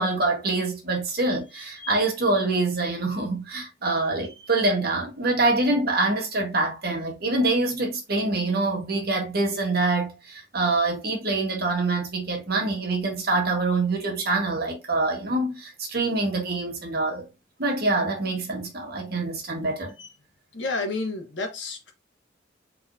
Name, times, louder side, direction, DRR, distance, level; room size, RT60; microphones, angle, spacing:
voice 1, 0.0-17.3 17.6-19.9, right 2 dB, 55° right, 1.6 m, -25 dB
voice 2, 20.5-21.9, left 3 dB, 70° left, 1.4 m, -30 dB
4.8 x 3.9 x 2.8 m
head